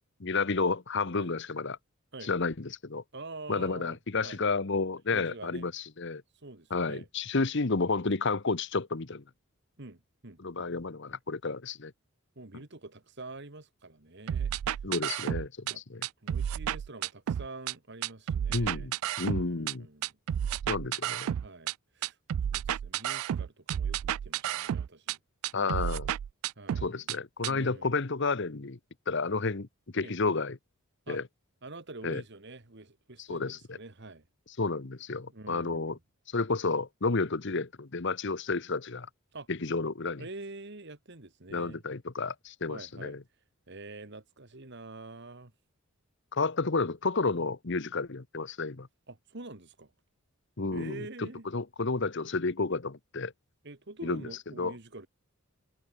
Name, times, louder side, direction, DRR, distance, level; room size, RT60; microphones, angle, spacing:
voice 1, 0.2-1.8 2.2-3.0 3.5-6.2 6.7-9.2 10.4-11.9 14.8-16.1 18.5-19.9 20.7-21.3 25.5-26.1 26.8-28.8 29.1-29.7 29.9-30.6 31.1-31.2 32.0-32.2 33.3-33.8 34.6-36.0 36.3-39.1 39.5-40.2 41.5-43.2 46.3-48.9 50.6-53.3 54.0-54.2 54.6-54.7, left 3 dB, 55° left, 1.0 m, -31 dB
voice 2, 3.1-4.4 5.1-5.7 6.3-7.1 9.8-10.7 12.4-14.8 15.6-15.8 16.2-18.9 19.4-20.2 21.4-22.2 22.5-25.2 26.6-27.1 27.4-28.0 30.0-30.2 31.1-31.2 31.6-34.2 35.3-36.0 39.3-39.5 40.2-41.8 42.7-43.2 43.7-45.5 49.1-49.9 50.7-51.5 53.6-55.1, right 2 dB, 55° right, 2.0 m, -46 dB
sound 1, 14.3-15.7 16.0-17.7 18.0-19.7 20.0-21.7 22.0-25.2 25.4-27.2 27.4-27.5, right 10 dB, 80° right, 0.3 m, -31 dB
head